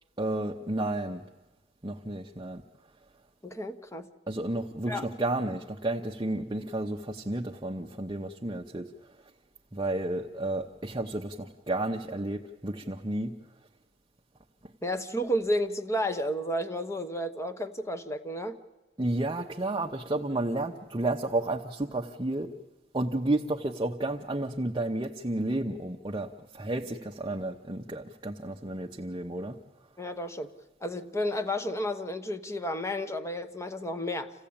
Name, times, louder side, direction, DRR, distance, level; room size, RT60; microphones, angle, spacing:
voice 1, 0.2-1.3 1.8-2.6 4.3-9.2 9.7-13.3 19.0-22.5 22.9-29.6, right 2 dB, 25° right, 0.8 m, -32 dB
voice 2, 3.4-4.1 4.9-5.1 14.8-18.6 30.0-30.5 30.8-34.5, equal, 15° left, 1.1 m, -32 dB
27.5 x 15.5 x 8.7 m
head